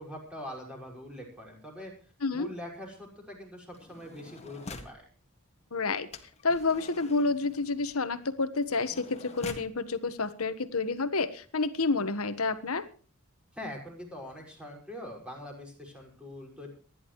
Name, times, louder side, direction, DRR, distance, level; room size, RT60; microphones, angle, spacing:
voice 1, 0.0-1.9 2.3-5.1 13.5-16.7, left 1 dB, 5° right, -1 dB, 5.6 m, -43 dB
voice 2, 2.2-2.5 5.7-6.1 6.4-12.9, left 3 dB, 80° left, 12 dB, 1.4 m, -29 dB
sound 1, 3.7-5.0 6.1-9.8 10.6-10.7 10.9-11.2, left 3 dB, 30° left, 2.0 m, -46 dB
27.5 x 11.0 x 3.1 m, 0.39 s
head